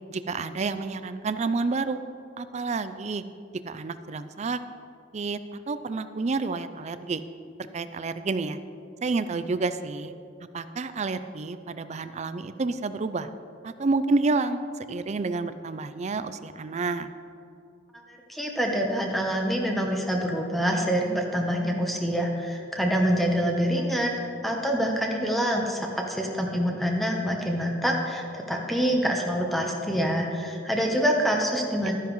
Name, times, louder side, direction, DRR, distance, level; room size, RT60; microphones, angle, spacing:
voice 1, 0.1-2.0 2.4-3.2 3.6-4.6 5.1-7.2 7.7-8.6 9.0-10.1 10.5-13.3 13.6-17.1, right 3 dB, 35° right, 12 dB, 0.4 m, -29 dB
voice 2, 18.3-24.1 24.4-31.9, equal, ahead, 0 dB, 0.9 m, -26 dB
13.0 x 10.0 x 3.1 m, 2.5 s
head